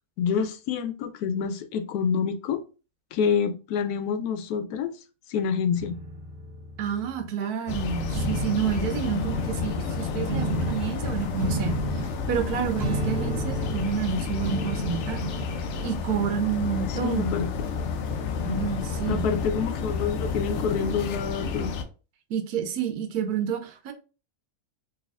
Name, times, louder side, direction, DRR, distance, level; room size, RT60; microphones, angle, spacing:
voice 1, 0.2-2.6 3.1-5.0 5.3-6.0 16.9-17.5 19.1-21.7, left 6 dB, 90° left, 1.1 m, -27 dB
sound 1, 5.7-7.3 8.1-8.7 9.1-9.7 10.3-10.9 11.4-12.1 12.8-14.0 14.4-15.6, right 2 dB, 60° right, 0.6 m, -32 dB
voice 2, 6.8-11.8 12.3-15.3 15.8-17.4 18.4-19.3 22.3-23.9, right 7 dB, 80° right, 1.2 m, -29 dB
sound 2, 7.7-21.8, left 5 dB, 65° left, 0.7 m, -30 dB
4.1 x 3.0 x 2.4 m
omnidirectional pair, 1.6 m